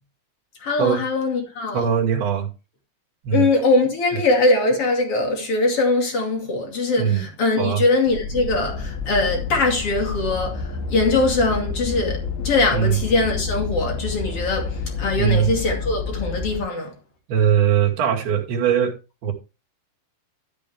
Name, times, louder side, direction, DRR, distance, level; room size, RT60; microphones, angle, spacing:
voice 1, 0.6-1.9 3.3-16.9, left 2 dB, 40° left, 2.8 m, -22 dB
voice 2, 1.7-2.5 3.2-3.5 4.1-4.2 7.0-7.3 7.6-7.8 12.7-13.0 15.2-15.5 17.3-18.9 19.2-19.3, right 8 dB, 60° right, 4.1 m, -20 dB
sound 1, 8.1-16.6, left 5 dB, 75° left, 3.7 m, -29 dB
13.5 x 8.6 x 3.4 m
omnidirectional pair, 5.3 m